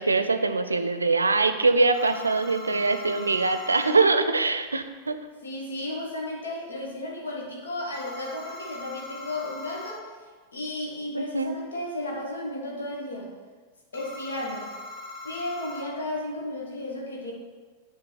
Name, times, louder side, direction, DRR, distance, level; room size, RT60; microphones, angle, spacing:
voice 1, 0.0-5.2 11.1-11.6, right 3 dB, 80° right, 9 dB, 0.5 m, -23 dB
sound 1, 1.9-4.0 7.9-10.0 13.9-15.8, left 2 dB, 25° left, 1.1 m, -41 dB
voice 2, 5.4-10.1 10.5-13.3 13.9-14.7 15.2-17.3, left 1 dB, 70° left, -1 dB, 1.3 m, -34 dB
8.8 x 3.7 x 6.7 m, 1.4 s
figure-of-eight pair, 90°, 0 cm